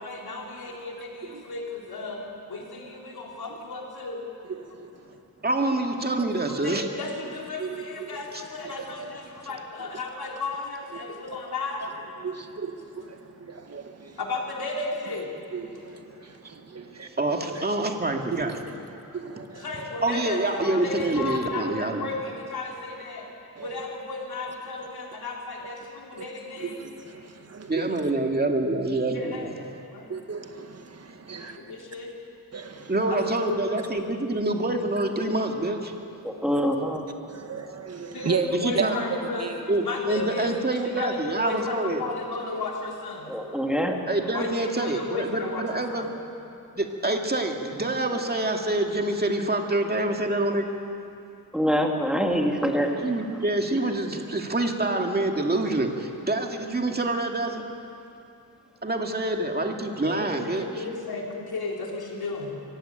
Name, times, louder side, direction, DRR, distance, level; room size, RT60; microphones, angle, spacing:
voice 1, 0.0-4.3 6.5-11.9 14.2-15.3 19.6-23.3 23.6-26.8 29.1-29.5 29.9-30.1 31.3-32.1 33.1-33.7 38.1-39.5 39.8-40.5 40.8-43.3 44.3-46.1 60.0-62.6, left 3 dB, 80° left, -1 dB, 4.0 m, -34 dB
voice 2, 4.6-5.0 7.6-8.4 8.6-8.8 9.9-10.0 11.3-11.4 11.8-11.9 12.1-14.2 15.5-17.1 17.5-17.7 18.3-18.6 18.9-19.8 23.6-23.8 26.6-27.9 30.1-31.6 32.5-32.9 37.3-38.9 39.2-39.6, right 5 dB, 45° right, 5 dB, 1.7 m, -35 dB
voice 3, 5.4-6.9 8.3-8.4 17.2-18.5 20.0-22.1 27.7-29.7 32.9-35.9 38.5-39.0 39.7-42.0 44.1-46.1 46.8-50.7 53.0-57.6 58.8-60.8, right 2 dB, 25° right, 2 dB, 2.3 m, -26 dB
voice 4, 36.4-37.0 43.3-44.0 51.5-53.1, equal, ahead, 1 dB, 2.4 m, -24 dB
24.0 x 16.0 x 9.1 m, 2.6 s
wide cardioid pair, 105°, 37 cm